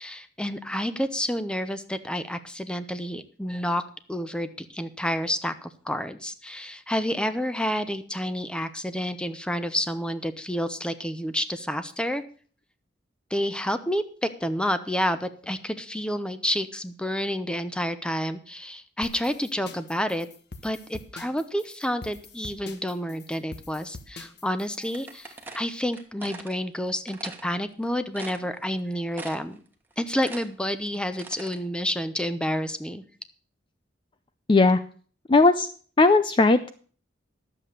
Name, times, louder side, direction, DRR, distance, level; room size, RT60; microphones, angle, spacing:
voice 1, 0.0-3.8 4.1-12.2 13.3-20.3 20.6-29.6 30.0-33.0, equal, 5° left, 11 dB, 0.8 m, -29 dB
sound 1, 19.0-25.4, left 3 dB, 60° left, 1.3 m, -45 dB
sound 2, 24.9-26.5 27.1-27.4 27.8-27.9 28.1-28.8 29.1-29.6 29.9-31.6, right 3 dB, 10° right, 1.4 m, -41 dB
voice 2, 34.5-34.8 35.3-35.7 36.0-36.7, left 3 dB, 25° left, 11 dB, 0.5 m, -18 dB
11.5 x 7.6 x 6.6 m, 0.42 s
head